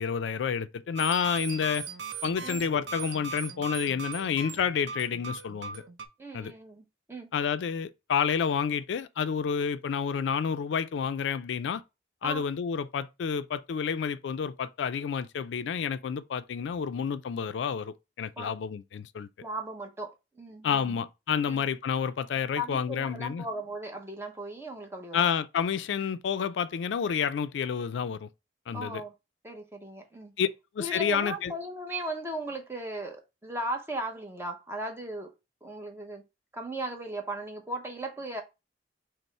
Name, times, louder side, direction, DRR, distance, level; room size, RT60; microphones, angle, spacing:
voice 1, 0.0-1.9 2.2-5.8 6.3-6.5 7.3-11.8 12.2-19.3 20.6-23.4 25.1-28.3 28.7-29.0 30.4-30.5 30.7-31.5, left 7 dB, 85° left, 0.3 m, -29 dB
sound 1, 1.0-6.1, right 5 dB, 90° right, 0.5 m, -39 dB
voice 2, 6.2-7.3 12.2-12.4 18.4-18.6 19.4-21.0 21.5-21.6 22.6-25.3 28.7-29.1 29.4-30.3 30.8-35.3 35.6-36.2 36.5-38.4, right 1 dB, 15° right, 0.7 m, -37 dB
5.3 x 2.0 x 4.2 m
head